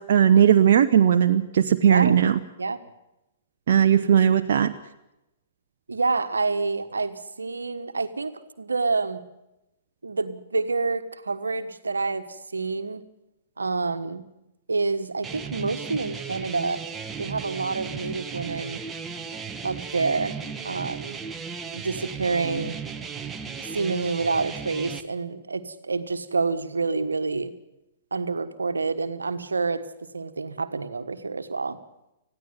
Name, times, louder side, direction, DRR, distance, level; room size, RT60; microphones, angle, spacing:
voice 1, 0.0-2.4 3.7-4.7, right 9 dB, 55° right, 6 dB, 0.8 m, -18 dB
voice 2, 1.8-2.2 2.6-2.9 5.9-9.2 10.0-13.0 13.6-14.3 14.7-16.8 17.2-18.8 19.6-21.2 21.7-22.8 23.6-27.5 28.1-29.9 30.1-31.8, right 4 dB, 80° right, 9 dB, 1.4 m, -28 dB
sound 1, 15.2-25.0, right 6 dB, 15° right, 1.2 m, -36 dB
20.0 x 15.0 x 9.5 m, 0.92 s
figure-of-eight pair, 115°, 0 cm